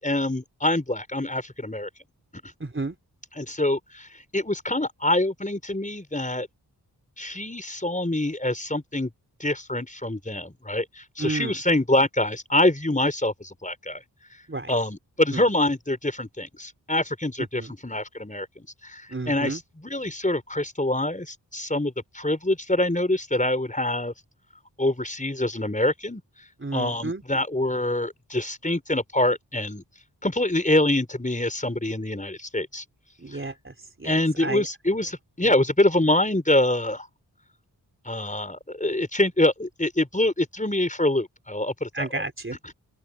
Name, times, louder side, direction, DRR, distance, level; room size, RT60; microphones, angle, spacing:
voice 1, 0.0-1.9 3.4-4.1 4.3-6.5 7.2-9.1 9.4-14.0 14.7-24.1 24.8-26.2 26.7-29.8 30.2-32.8 34.0-37.1 38.1-42.2, left 1 dB, 20° left, 5.4 m, -25 dB
voice 2, 2.6-3.0 11.2-11.6 14.5-14.7 15.3-15.4 17.5-17.7 19.1-19.6 26.6-27.2 33.2-33.7 34.0-34.7 41.9-42.6, right 3 dB, 30° right, 3.6 m, -31 dB
open air
cardioid pair, 40°, 40 cm